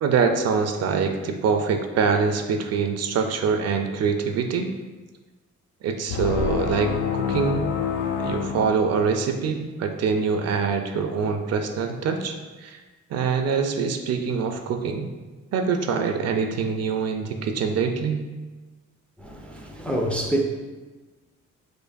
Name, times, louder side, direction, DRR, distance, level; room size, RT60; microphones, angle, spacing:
voice 1, 0.0-4.7 5.8-7.6 8.2-12.3 12.6-12.8 13.1-15.1 15.5-18.2, right 5 dB, 55° right, 0.4 m, -24 dB
sound 1, 6.1-9.4, left 7 dB, 75° left, 0.5 m, -27 dB
voice 2, 19.2-20.4, right 1 dB, 5° left, 0.3 m, -26 dB
4.5 x 2.5 x 2.5 m
cardioid pair, 90°, 30 cm